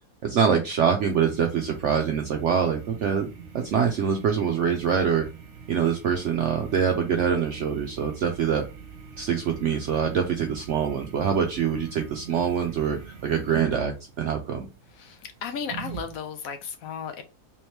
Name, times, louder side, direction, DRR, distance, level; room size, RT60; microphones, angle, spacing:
voice 1, 0.2-3.3 3.5-5.3 5.7-8.6 9.2-14.7, right 7 dB, 70° right, 0.7 m, -24 dB
sound 1, 1.0-16.2, right 7 dB, 50° right, 1.1 m, -44 dB
voice 2, 14.9-17.2, left 6 dB, 70° left, 0.9 m, -35 dB
3.4 x 2.9 x 3.2 m
omnidirectional pair, 1.7 m